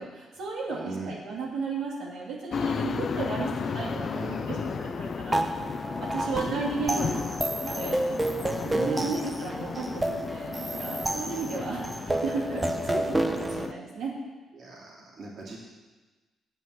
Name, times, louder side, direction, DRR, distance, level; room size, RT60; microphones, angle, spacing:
voice 1, 0.0-5.4 6.0-7.1 7.6-8.0 8.9-14.1, right 3 dB, 75° right, -3 dB, 2.6 m, -34 dB
voice 2, 0.7-1.2 3.6-5.4 6.2-6.6 6.9-7.2 8.6-9.1 14.5-15.6, right 3 dB, 55° right, -3 dB, 2.5 m, -38 dB
sound 1, 2.5-13.7, left 6 dB, 50° left, 0.3 m, -34 dB
sound 2, 5.3-13.7, right 1 dB, 15° right, 0.8 m, -30 dB
9.0 x 7.7 x 7.8 m, 1.2 s
cardioid pair, 90°, 0 cm